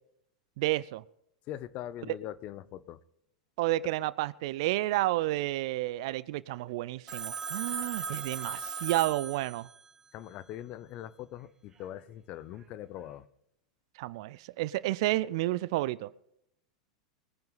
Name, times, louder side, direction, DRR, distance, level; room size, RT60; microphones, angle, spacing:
voice 1, 0.6-1.0 3.6-9.7 14.0-16.1, right 17 dB, 55° right, 20 dB, 0.6 m, -31 dB
voice 2, 1.5-3.0 10.1-13.3, left 12 dB, 40° left, 17 dB, 0.9 m, -42 dB
Telephone, 7.1-9.9, right 5 dB, 20° right, 1.6 m, -37 dB
21.5 x 10.5 x 4.1 m, 0.76 s
figure-of-eight pair, 90°, 3 cm